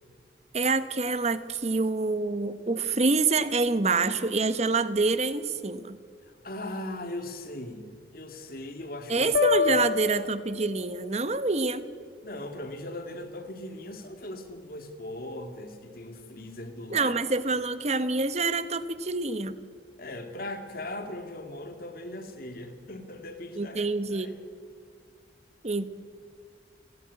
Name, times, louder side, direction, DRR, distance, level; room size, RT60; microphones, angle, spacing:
voice 1, 0.5-6.0 9.1-11.9 16.9-19.6 23.6-24.4 25.6-25.8, right 3 dB, 40° right, 13 dB, 1.0 m, -26 dB
voice 2, 6.2-9.3 9.7-9.8 12.2-17.1 20.0-24.3, left 1 dB, 55° left, 6 dB, 2.3 m, -39 dB
sound 1, 9.3-11.2, left 6 dB, 80° left, 1.7 m, -27 dB
29.5 x 11.0 x 9.6 m, 2.1 s
head